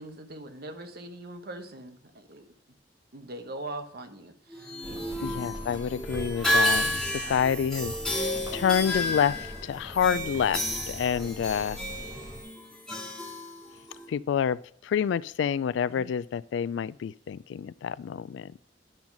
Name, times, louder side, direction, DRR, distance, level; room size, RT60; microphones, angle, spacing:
voice 1, 0.0-2.5 3.1-5.3 7.2-7.4 15.9-16.1, right 2 dB, 60° right, 1.0 m, -42 dB
sound 1, 4.5-14.1, left 1 dB, 5° left, 2.1 m, -31 dB
sound 2, 4.8-12.4, equal, 20° right, 1.4 m, -42 dB
voice 2, 5.2-11.8 14.1-18.5, left 7 dB, 80° left, 0.3 m, -28 dB
10.5 x 3.9 x 6.0 m
head